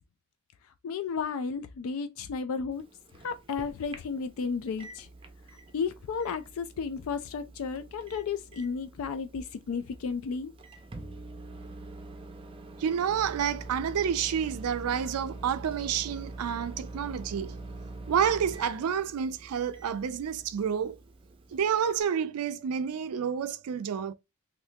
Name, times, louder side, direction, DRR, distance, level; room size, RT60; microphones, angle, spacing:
voice 1, 0.8-2.8 3.2-5.1 5.7-10.5, left 5 dB, 65° left, 0.3 m, -33 dB
Microwave oven, 2.7-22.0, right 2 dB, 25° right, 0.5 m, -45 dB
voice 2, 12.8-17.6 18.1-21.0 21.5-24.1, right 8 dB, 85° right, 0.4 m, -29 dB
3.5 x 2.6 x 2.6 m
head